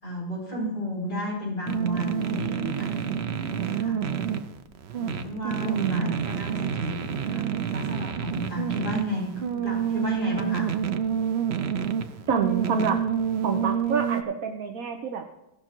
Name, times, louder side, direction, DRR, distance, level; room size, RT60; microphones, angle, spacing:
voice 1, 0.0-4.0 4.9-9.3 9.5-10.7, left 1 dB, 30° left, -5 dB, 5.3 m, -33 dB
sound 1, 1.7-14.2, right 8 dB, 80° right, 0.5 m, -28 dB
voice 2, 5.6-6.2 12.3-13.0 13.4-15.2, right 6 dB, 55° right, 4 dB, 1.2 m, -27 dB
16.5 x 6.2 x 4.5 m, 0.89 s
omnidirectional pair, 2.0 m